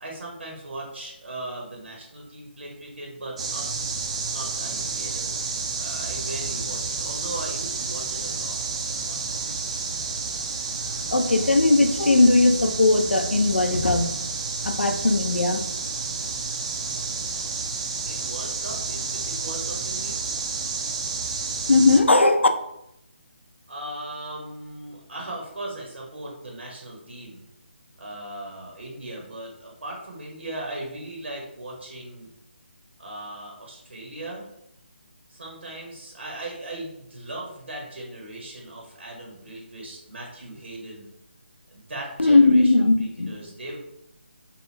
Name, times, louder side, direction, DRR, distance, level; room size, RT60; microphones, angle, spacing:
voice 1, 0.0-3.8 4.3-5.4 5.8-9.6 18.1-20.3 23.7-27.4 28.0-32.3 33.0-34.4 35.3-41.1 41.7-43.8, right 1 dB, 80° right, -2 dB, 0.9 m, -38 dB
sound 1, 3.4-22.0, right 4 dB, 30° right, 0.3 m, -30 dB
voice 2, 11.1-14.1 14.6-15.6 21.7-22.5 42.2-43.3, left 2 dB, 90° left, 6 dB, 0.4 m, -18 dB
2.8 x 2.2 x 3.1 m, 0.80 s
figure-of-eight pair, 155°, 6 cm